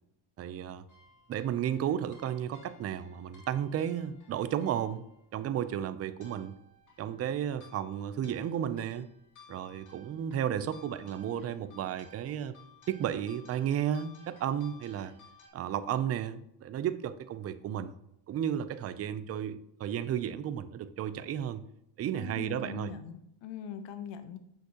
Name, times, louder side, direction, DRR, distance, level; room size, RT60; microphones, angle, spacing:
voice 1, 0.4-0.8 1.3-5.0 5.3-6.5 7.0-9.1 9.5-12.6 12.9-15.1 15.5-17.9 18.3-21.7 22.0-22.9, right 9 dB, 35° right, 13 dB, 0.4 m, -33 dB
sound 1, 0.9-15.5, left 2 dB, 40° left, 2.3 m, -58 dB
voice 2, 22.1-24.4, left 6 dB, 65° left, 10 dB, 1.0 m, -41 dB
7.7 x 6.4 x 2.9 m, 0.77 s
cardioid pair, 110°, 48 cm